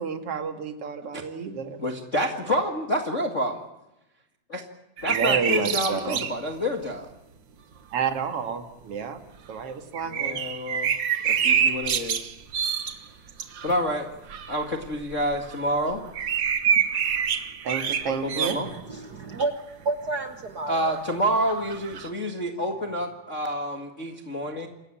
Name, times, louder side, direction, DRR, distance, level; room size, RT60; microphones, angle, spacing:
voice 1, 0.0-1.8 5.0-6.2 7.9-9.2 9.5-10.4 17.6-18.6, right 6 dB, 45° right, 7 dB, 2.6 m, -30 dB
voice 2, 1.8-3.6 4.5-4.6 5.0-7.1 10.0-10.9 11.2-12.3 13.6-14.1 14.5-16.0 18.1-18.7 20.7-24.7, equal, 30° left, 3 dB, 1.5 m, -28 dB
sound 1, 5.0-6.4 6.9-7.0 9.9-13.8 14.3-18.7 19.3-19.4 20.8-22.1, right 7 dB, 65° right, 1.1 m, -27 dB
voice 3, 18.6-21.0, right 3 dB, 90° right, 7 dB, 0.8 m, -31 dB
28.0 x 16.0 x 8.8 m, 0.94 s
omnidirectional pair, 4.0 m